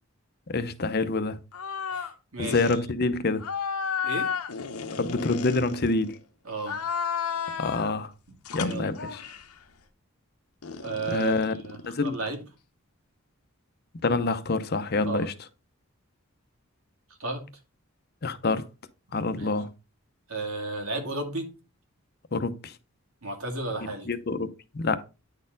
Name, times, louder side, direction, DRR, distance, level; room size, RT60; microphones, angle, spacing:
voice 1, 0.5-1.4 2.4-3.4 5.0-6.2 7.6-8.1 8.5-9.2 11.1-11.5 11.9-12.1 14.0-15.3 18.2-18.6 19.1-19.7 22.3-22.7 24.1-24.5 24.7-25.0, left 3 dB, 45° left, 0.7 m, -26 dB
sound 1, 1.5-2.1 2.4-2.8 3.4-6.2 6.6-8.0 8.4-9.5 10.6-12.4, left 6 dB, 90° left, 0.9 m, -33 dB
voice 2, 1.9-2.8 4.0-4.3 6.4-6.8 8.6-8.9 10.8-12.4 15.1-15.3 17.2-17.4 19.4-19.5 20.3-21.5 23.2-24.1, right 2 dB, 75° right, 2.1 m, -33 dB
9.6 x 4.3 x 3.9 m
head